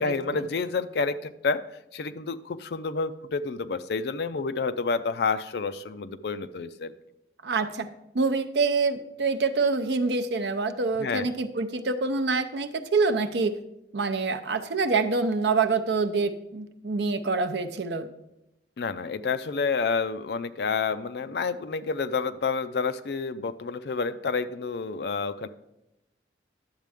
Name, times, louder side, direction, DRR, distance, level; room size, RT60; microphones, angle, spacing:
voice 1, 0.0-1.6 1.9-6.9 11.0-11.3 18.8-25.5, left 4 dB, 60° left, 12 dB, 0.4 m, -29 dB
voice 2, 7.4-7.9 8.1-13.6 13.9-18.1, right 4 dB, 70° right, 9 dB, 0.6 m, -26 dB
10.5 x 7.4 x 3.5 m, 0.87 s
head